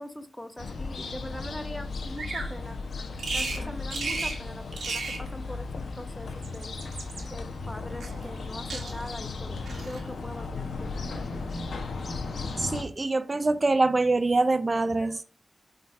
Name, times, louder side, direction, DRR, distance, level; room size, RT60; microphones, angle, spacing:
voice 1, 0.0-2.8 3.3-5.7 5.9-6.7 7.3-11.4, left 1 dB, 10° left, 1.1 m, -42 dB
sound 1, 0.6-12.8, left 3 dB, 80° left, 1.0 m, -36 dB
Bird vocalization bird call bird song, 2.2-2.5 3.2-3.6 3.9-4.4 4.7-5.2 6.2-7.2 8.0-8.4 8.7-9.2 9.7-10.0, right 3 dB, 85° right, 1.6 m, -34 dB
voice 2, 12.6-15.2, right 3 dB, 45° right, 0.4 m, -24 dB
5.6 x 4.1 x 4.2 m
cardioid pair, 40°, 0 cm